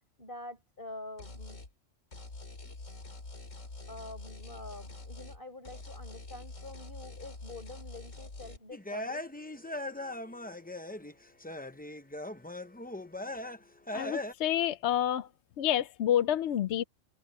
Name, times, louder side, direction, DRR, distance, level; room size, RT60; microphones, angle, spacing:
voice 1, 0.2-1.6 3.9-9.3, left 2 dB, 45° left, 5.7 m, -46 dB
sound 1, 1.2-1.7 2.1-5.4 5.6-8.6, left 3 dB, 85° left, 3.4 m, -46 dB
sound 2, 8.7-11.1 11.4-13.6 13.9-14.3, left 1 dB, 10° left, 0.6 m, -39 dB
voice 2, 13.9-15.3 15.6-16.8, left 11 dB, 65° left, 0.8 m, -28 dB
omnidirectional pair, 1.3 m